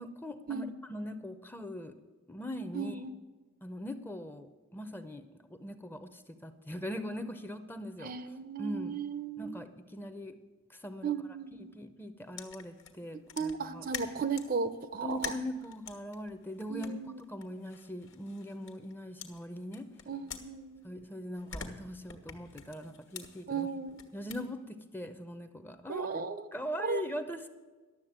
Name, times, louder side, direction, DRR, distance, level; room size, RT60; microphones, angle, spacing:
voice 1, 0.0-1.9 2.3-3.0 3.6-5.2 5.6-8.1 8.6-9.0 9.4-10.4 10.7-11.1 11.5-13.8 15.0-19.9 20.8-23.7 24.1-26.1 26.5-27.5, left 1 dB, 10° left, 9 dB, 0.6 m, -41 dB
voice 2, 2.7-3.1 8.0-9.6 11.0-11.8 13.4-15.4 16.7-17.2 20.1-20.9 23.5-24.0 25.9-26.5 26.8-27.0, right 5 dB, 40° right, 12 dB, 0.6 m, -35 dB
sound 1, 12.4-14.6 15.1-18.9 19.2-21.0 21.3-24.4, left 6 dB, 60° left, 1.4 m, -46 dB
12.0 x 7.3 x 8.7 m, 1.3 s
head